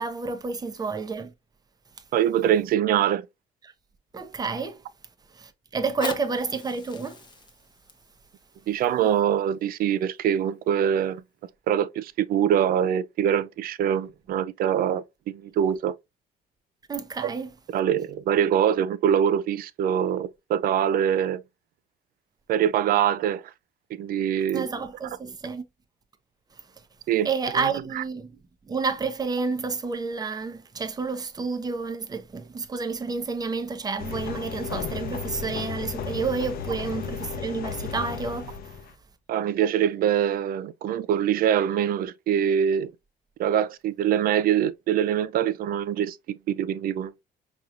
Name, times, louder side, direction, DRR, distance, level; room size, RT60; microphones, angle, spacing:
voice 1, 0.0-1.3 4.1-4.8 5.3-7.2 16.9-17.5 24.5-25.7 27.2-28.3 28.7-38.8, right 4 dB, 25° right, 0.8 m, -30 dB
voice 2, 2.1-3.3 8.7-11.2 11.7-15.9 17.2-17.3 17.7-21.4 22.5-23.4 24.0-24.7 27.1-27.3 27.5-27.7 28.0-28.1 39.3-42.9 43.4-47.2, right 9 dB, 60° right, 0.5 m, -24 dB
Fire, 5.7-10.7 11.4-11.5, left 3 dB, 25° left, 0.8 m, -42 dB
sound 1, 34.0-38.9, left 7 dB, 60° left, 0.7 m, -34 dB
5.3 x 3.0 x 2.5 m
cardioid pair, 110°, 17 cm